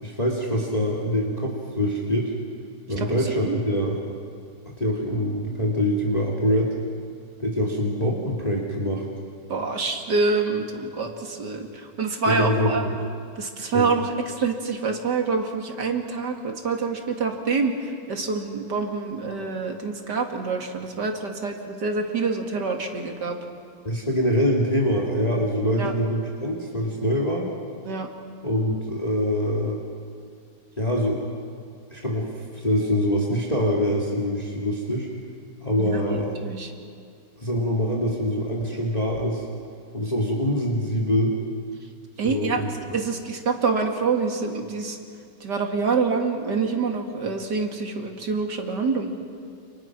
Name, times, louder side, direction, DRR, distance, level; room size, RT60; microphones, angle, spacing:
voice 1, 0.0-2.3 2.9-4.0 4.8-6.7 7.4-9.1 12.3-13.0 13.7-13.9 23.8-27.5 28.4-29.8 30.8-31.2 31.9-35.1 35.6-36.3 37.4-39.4 39.9-41.3 42.2-42.7, equal, 20° left, -3 dB, 2.7 m, -24 dB
voice 2, 9.5-12.8 13.4-23.4 25.8-25.9 27.9-28.1 35.8-36.7 42.2-42.6 42.9-45.0 45.4-49.1, right 4 dB, 65° right, 3 dB, 2.9 m, -26 dB
29.5 x 28.5 x 6.1 m, 2.3 s
omnidirectional pair, 2.0 m